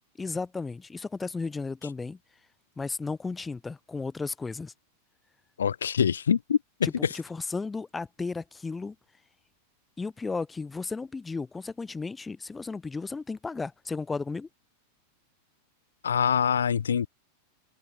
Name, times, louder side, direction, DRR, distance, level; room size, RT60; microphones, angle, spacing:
voice 1, 0.2-2.2 2.8-4.7 6.8-9.0 10.0-14.5, left 4 dB, 10° left, 3.7 m, -34 dB
voice 2, 5.6-6.6 7.0-7.1 16.0-17.1, left 7 dB, 70° left, 1.6 m, -24 dB
figure-of-eight pair, 90°, 0 cm